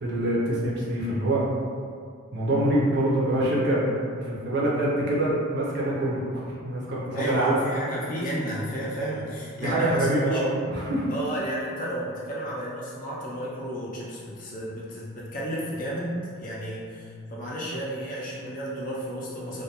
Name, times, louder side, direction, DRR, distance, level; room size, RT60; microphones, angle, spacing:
voice 1, 0.0-1.4 2.3-4.0 4.2-7.6 9.6-11.1, right 1 dB, 55° right, -6 dB, 0.5 m, -25 dB
voice 2, 7.1-10.4 11.1-19.6, equal, 40° left, -6 dB, 0.4 m, -32 dB
2.2 x 2.2 x 2.8 m, 2.2 s
head